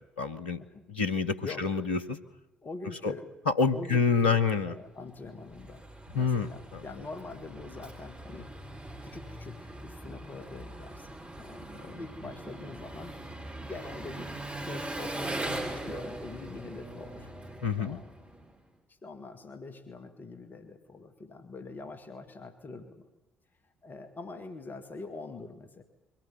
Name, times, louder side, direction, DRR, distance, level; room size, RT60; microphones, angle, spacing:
voice 1, 0.2-0.6 0.9-2.2 3.0-3.1 3.5-4.7 6.1-6.8 17.6-18.0, left 5 dB, 80° left, 8 dB, 1.1 m, -27 dB
voice 2, 1.4-1.7 2.6-3.3 3.7-5.9 6.1-8.5 9.0-13.2 13.7-14.3 14.6-17.3 17.8-18.1 18.9-23.1 23.8-25.8, left 3 dB, 40° left, 9 dB, 2.4 m, -44 dB
Engine, 5.0-18.6, right 1 dB, 25° right, 6.9 m, -41 dB
24.0 x 16.5 x 9.4 m, 0.98 s
figure-of-eight pair, 45°, 5 cm